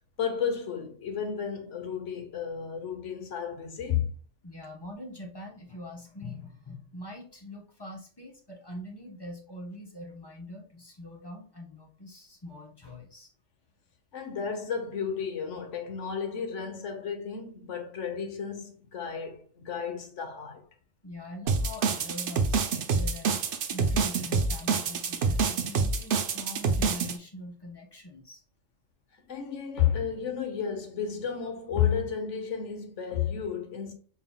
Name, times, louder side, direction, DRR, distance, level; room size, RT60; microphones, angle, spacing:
voice 1, 0.2-4.1 14.1-20.6 29.3-33.9, left 8 dB, 75° left, 1.3 m, -32 dB
voice 2, 4.4-13.3 21.0-23.4 23.7-28.4, left 1 dB, 20° left, 0.9 m, -43 dB
sound 1, 21.5-27.1, right 4 dB, 55° right, 0.7 m, -27 dB
4.4 x 3.8 x 2.2 m
omnidirectional pair, 1.3 m